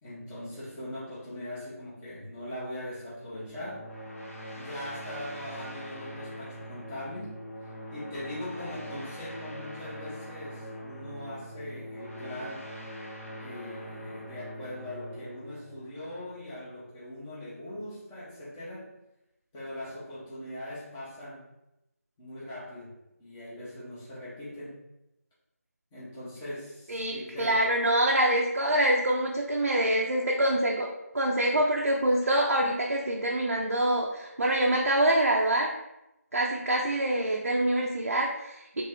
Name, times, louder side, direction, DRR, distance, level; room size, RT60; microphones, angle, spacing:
voice 1, 0.0-3.9 4.5-7.4 7.9-12.7 13.4-18.9 19.5-21.5 22.2-22.9 23.2-24.8 25.9-27.7, left 1 dB, 10° left, -10 dB, 0.6 m, -40 dB
sound 1, 3.3-16.7, equal, 60° left, 0.7 m, -43 dB
voice 2, 26.9-30.9 31.1-35.7 36.3-38.8, right 1 dB, 60° right, -2 dB, 0.5 m, -25 dB
3.2 x 2.5 x 3.4 m, 0.91 s
figure-of-eight pair, 165°, 9 cm